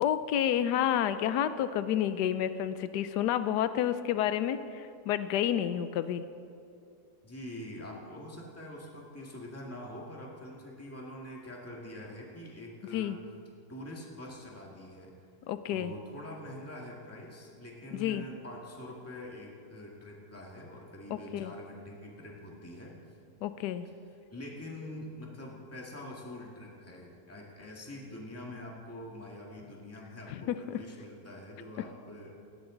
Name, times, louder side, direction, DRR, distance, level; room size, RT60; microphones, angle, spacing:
voice 1, 0.0-6.2 12.9-13.2 15.5-15.9 17.9-18.2 21.1-21.5 23.4-23.9 30.3-30.4 30.7-30.8, left 10 dB, 80° left, 12 dB, 1.2 m, -30 dB
voice 2, 7.2-13.2 13.7-15.1 15.7-22.9 24.3-32.3, left 1 dB, 10° left, -2 dB, 2.0 m, -45 dB
18.5 x 16.5 x 3.9 m, 2.6 s
omnidirectional pair, 1.8 m